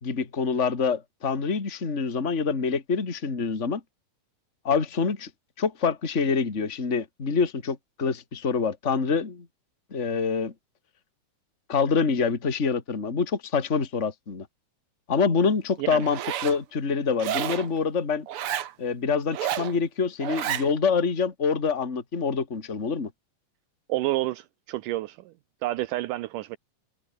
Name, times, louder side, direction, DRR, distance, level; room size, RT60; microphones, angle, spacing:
voice 1, 0.0-3.8 4.6-5.3 5.6-9.5 9.9-10.5 11.7-14.5 15.1-18.3 18.8-23.1, left 5 dB, 25° left, 2.6 m, -26 dB
Zipper (clothing), 16.0-16.6 17.2-17.7 18.3-18.7 19.3-19.7 20.2-20.7, right 11 dB, 60° right, 1.5 m, -30 dB
voice 2, 23.9-25.3 25.6-26.6, right 16 dB, 80° right, 2.3 m, -29 dB
omnidirectional pair, 3.8 m